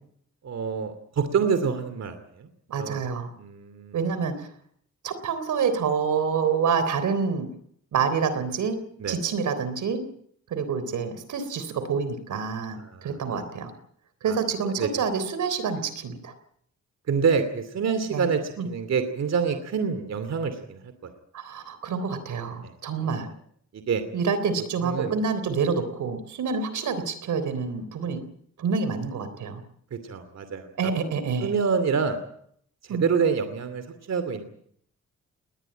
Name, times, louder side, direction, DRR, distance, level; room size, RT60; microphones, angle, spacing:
voice 1, 0.4-2.5 2.8-3.1 3.4-4.0 9.0-9.2 12.8-13.5 14.3-14.4 14.6-14.9 17.1-21.1 22.6-22.7 23.0-23.2 23.7-24.0 24.8-25.2 29.9-30.7 31.4-32.2 32.8-34.5, right 6 dB, 60° right, 10 dB, 2.6 m, -27 dB
voice 2, 2.7-3.3 3.9-4.5 5.0-7.5 7.9-8.8 9.1-10.0 10.5-13.7 14.2-16.3 18.1-18.3 18.6-18.7 21.3-23.3 24.1-28.2 28.6-29.6 30.8-31.5 32.9-33.1, right 5 dB, 85° right, 11 dB, 3.6 m, -27 dB
20.5 x 19.5 x 8.9 m, 0.68 s
wide cardioid pair, 130°, 29 cm